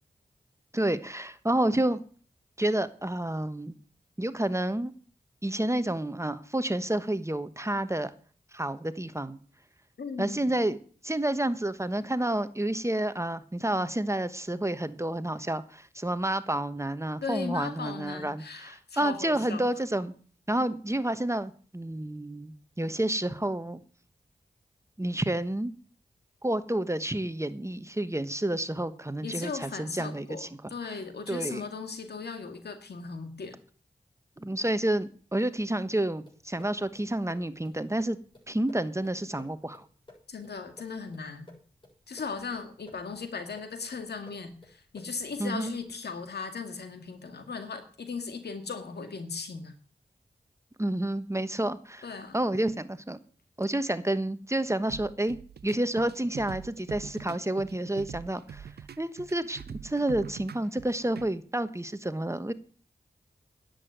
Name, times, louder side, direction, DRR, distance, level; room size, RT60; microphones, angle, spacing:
voice 1, 0.7-2.0 2.6-3.7 4.2-4.9 5.4-8.1 8.5-9.4 10.2-10.8 11.0-20.1 20.5-23.8 25.0-25.7 26.4-30.5 31.3-31.6 34.4-38.2 38.5-39.8 45.4-45.7 50.8-52.1 52.3-53.2 53.6-55.4 55.6-58.7 59.0-62.5, right 1 dB, 15° right, 12 dB, 1.2 m, -29 dB
voice 2, 10.0-10.5 17.2-19.7 29.2-33.6 40.3-41.5 42.1-49.7 52.0-52.5, left 5 dB, 85° left, 7 dB, 2.1 m, -37 dB
sound 1, 36.2-46.0, left 2 dB, 30° left, 7.0 m, -56 dB
sound 2, 54.9-61.3, right 7 dB, 75° right, 0.5 m, -43 dB
10.5 x 8.1 x 9.3 m, 0.43 s
cardioid pair, 40°, 17 cm